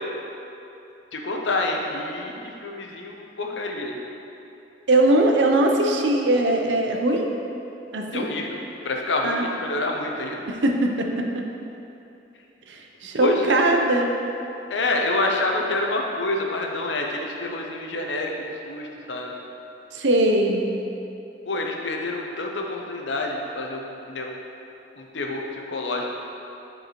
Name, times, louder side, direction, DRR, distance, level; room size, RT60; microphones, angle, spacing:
voice 1, 1.1-2.3 2.6-4.0 8.1-10.4 13.1-13.6 14.7-19.4 21.5-24.3 25.0-26.1, left 2 dB, 80° left, 1 dB, 0.8 m, -27 dB
voice 2, 4.9-7.3 7.9-8.3 9.2-9.4 10.5-11.4 12.7-14.1 19.9-20.7, right 1 dB, 80° right, 2 dB, 0.7 m, -21 dB
10.5 x 4.6 x 3.1 m, 2.9 s
head